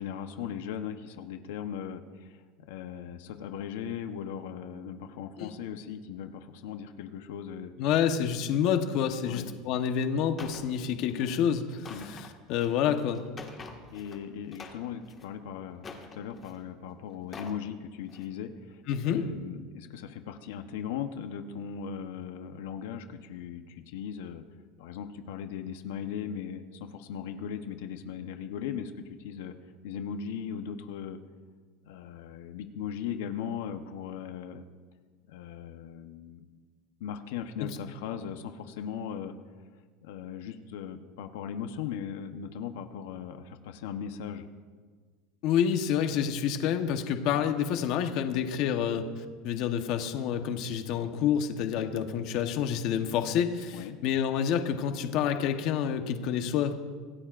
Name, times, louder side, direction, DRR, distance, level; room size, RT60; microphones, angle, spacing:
voice 1, 0.0-2.4 2.7-7.7 9.2-9.5 11.9-12.1 13.9-24.4 24.8-28.9 29.2-29.5 29.8-31.2 31.8-34.7 35.3-36.4 37.0-39.3 40.0-44.5 53.7-54.0, left 8 dB, 80° left, 6 dB, 1.0 m, -38 dB
voice 2, 7.8-12.0 12.5-13.2 18.9-19.2 45.4-49.1 49.4-56.7, left 8 dB, 50° left, 6 dB, 1.1 m, -28 dB
sound 1, 10.4-10.7 11.1-11.3 11.7-14.2 14.5-15.3 15.8-16.6 17.1-17.6 18.0-18.3, left 4 dB, 20° left, 1.7 m, -46 dB
26.0 x 18.0 x 2.5 m, 1.5 s
supercardioid pair, 160°, 0 cm